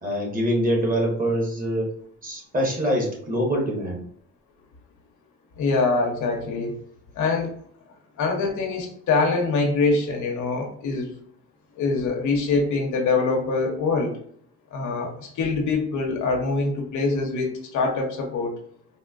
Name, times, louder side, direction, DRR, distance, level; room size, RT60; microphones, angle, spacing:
voice 1, 0.0-1.9 2.2-4.0, equal, 30° right, -1 dB, 1.4 m, -24 dB
voice 2, 5.6-6.8 7.2-7.6 8.2-11.1 11.8-14.2 14.7-18.5, left 3 dB, 75° left, 2 dB, 0.9 m, -24 dB
4.1 x 2.2 x 2.5 m, 0.62 s
cardioid pair, 90°, 30 cm